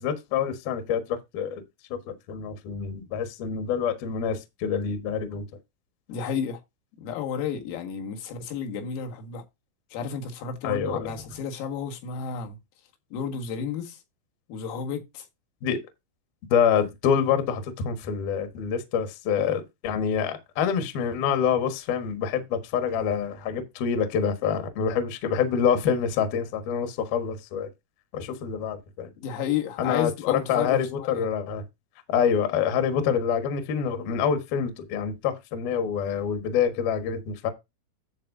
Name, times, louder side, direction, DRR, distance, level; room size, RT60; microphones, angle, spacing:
voice 1, 0.0-1.6 1.9-2.0 2.3-5.5 10.6-11.1 15.6-15.8 16.5-27.7 28.1-29.1 29.8-31.6 32.1-37.5, left 7 dB, 65° left, 2.7 m, -26 dB
voice 2, 6.1-6.6 7.0-9.4 9.9-12.6 13.1-14.0 14.5-15.2 29.2-31.1, left 7 dB, 80° left, 4.5 m, -32 dB
12.0 x 7.4 x 2.7 m
omnidirectional pair, 6.0 m